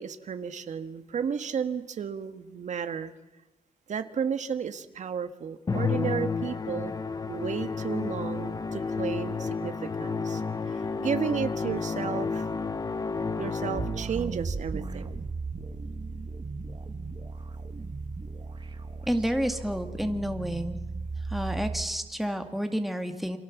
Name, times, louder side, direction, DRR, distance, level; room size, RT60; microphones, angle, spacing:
voice 1, 0.0-3.1 3.9-6.9 7.3-10.4 11.0-12.5 13.4-15.1, right 7 dB, 70° right, 9 dB, 1.6 m, -33 dB
Musical instrument, 5.7-14.2, left 4 dB, 30° left, 0.9 m, -31 dB
sound 1, 13.7-21.9, right 3 dB, 40° right, 2.0 m, -36 dB
voice 2, 19.1-20.8 21.3-23.4, equal, ahead, 6 dB, 2.0 m, -30 dB
29.5 x 27.5 x 7.3 m, 1.1 s
wide cardioid pair, 160°, 13 cm